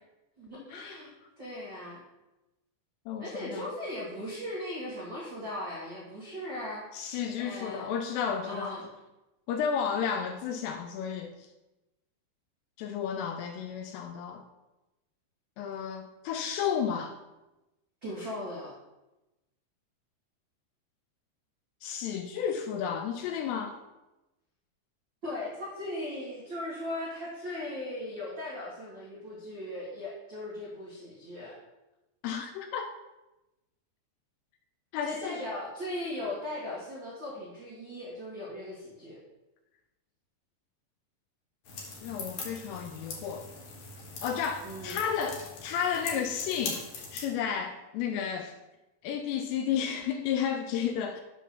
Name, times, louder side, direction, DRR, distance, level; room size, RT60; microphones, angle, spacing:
voice 1, 0.4-1.1 1.4-2.0 3.2-7.9 8.4-8.9 18.0-18.7 25.2-31.6 35.0-39.2 44.6-45.0, left 1 dB, 75° right, 1.0 m, -38 dB
voice 2, 3.1-3.7 6.9-8.7 9.5-11.5 12.8-14.4 15.6-17.2 21.8-23.8 32.2-32.9 34.9-35.4 42.0-43.5 44.2-48.5 49.0-51.2, left 7 dB, 85° left, 2.5 m, -32 dB
sound 1, 41.6-47.2, left 3 dB, 65° left, 2.0 m, -41 dB
8.2 x 6.0 x 3.7 m
omnidirectional pair, 5.1 m